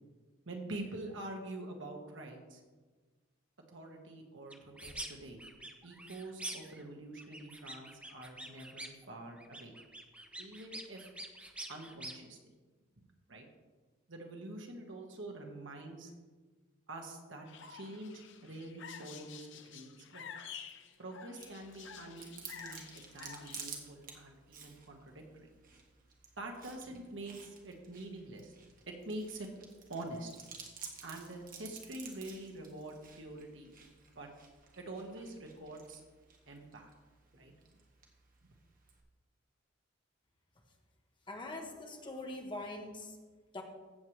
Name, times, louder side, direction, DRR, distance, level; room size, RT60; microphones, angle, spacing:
voice 1, 0.4-2.6 3.7-5.4 5.8-9.7 10.4-11.1 11.7-12.5 13.3-13.4 14.1-16.1 16.9-20.2 21.0-25.2 26.4-28.5 28.9-29.5 29.9-30.3 31.0-33.7 34.1-34.3 34.8-36.0 36.5-36.9 37.4-37.5, right 2 dB, 70° right, 2 dB, 1.6 m, -46 dB
sound 1, 4.5-5.1 5.4-6.8 7.1-9.0 9.4-12.1, right 1 dB, 5° right, 0.8 m, -46 dB
sound 2, 17.5-23.7, left 7 dB, 70° left, 0.7 m, -50 dB
Chewing mastication, 21.4-39.0, right 5 dB, 45° right, 1.6 m, -53 dB
voice 2, 41.3-43.2 43.5-43.6, left 2 dB, 25° left, 2 dB, 1.3 m, -43 dB
15.0 x 7.5 x 3.3 m, 1.3 s
head